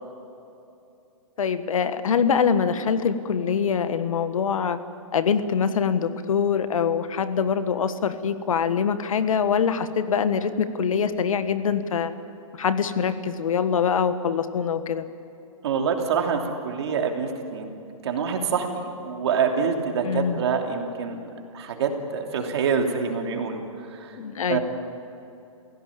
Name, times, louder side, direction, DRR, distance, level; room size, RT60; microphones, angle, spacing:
voice 1, 1.4-4.8 5.1-12.1 12.6-15.0 20.0-20.4 24.2-24.6, left 6 dB, 70° left, 11 dB, 1.5 m, -24 dB
voice 2, 15.6-17.7 18.0-21.2 21.5-23.6 23.9-24.2 24.5-24.6, right 6 dB, 50° right, 3 dB, 3.0 m, -26 dB
28.5 x 17.0 x 8.7 m, 2.8 s
hypercardioid pair, 170°, 18 cm